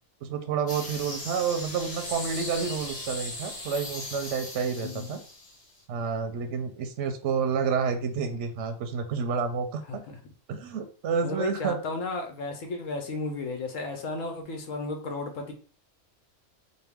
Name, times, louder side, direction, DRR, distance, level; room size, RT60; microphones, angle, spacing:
voice 1, 0.2-5.2 5.9-10.0 10.5-11.8, right 6 dB, 70° right, 6 dB, 0.8 m, -29 dB
sound 1, 0.7-5.8, left 2 dB, 60° left, 1.6 m, -38 dB
voice 2, 4.8-5.1 9.9-10.2 11.2-15.5, left 3 dB, 75° left, 4 dB, 1.1 m, -34 dB
4.4 x 2.2 x 3.5 m, 0.40 s
omnidirectional pair, 1.4 m